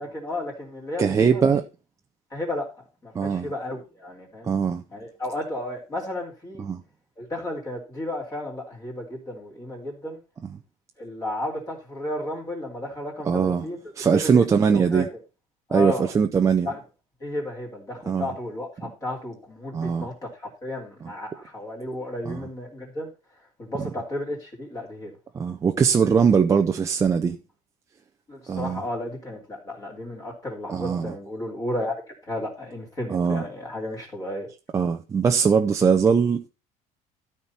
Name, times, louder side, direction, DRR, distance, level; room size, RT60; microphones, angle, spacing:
voice 1, 0.0-1.5 2.3-2.7 3.0-4.5 4.9-6.6 7.2-10.2 11.0-13.8 14.1-15.1 15.7-16.1 16.6-16.8 17.2-23.1 23.6-25.1 28.3-31.9 32.2-34.5, left 1 dB, 20° left, 2.9 m, -33 dB
voice 2, 1.0-1.6 3.1-3.5 4.5-4.8 6.6-6.8 13.3-13.7 14.0-15.1 15.7-16.7 18.1-18.3 19.7-20.1 22.3-22.4 25.3-27.4 28.5-28.8 30.7-31.1 33.1-33.5 34.7-36.4, right 6 dB, 20° right, 0.5 m, -21 dB
13.0 x 4.4 x 5.6 m
cardioid pair, 175°, 16 cm